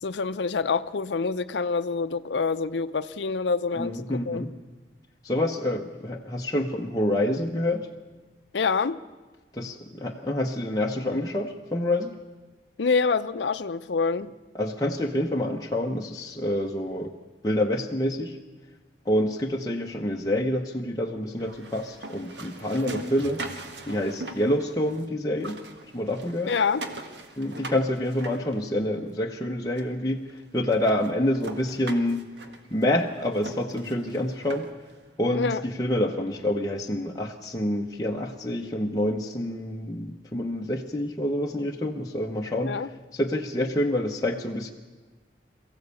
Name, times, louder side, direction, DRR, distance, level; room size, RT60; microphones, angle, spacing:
voice 1, 0.0-4.4 8.5-9.0 12.8-14.3 26.5-26.8 35.3-35.6 42.7-42.9, left 5 dB, 90° left, 11 dB, 0.6 m, -26 dB
voice 2, 3.8-4.5 5.2-7.9 9.5-12.1 14.5-17.1 17.4-18.4 19.1-23.4 23.9-25.6 25.9-26.5 27.4-30.2 30.5-32.2 32.7-34.7 35.2-42.8 43.1-44.7, left 1 dB, 20° left, 0 dB, 0.9 m, -27 dB
sound 1, 21.4-25.1 25.3-29.1 29.8-29.9 30.3-30.4 30.7-34.9, right 2 dB, 85° right, 1.7 m, -41 dB
23.0 x 15.0 x 8.3 m, 1.3 s
head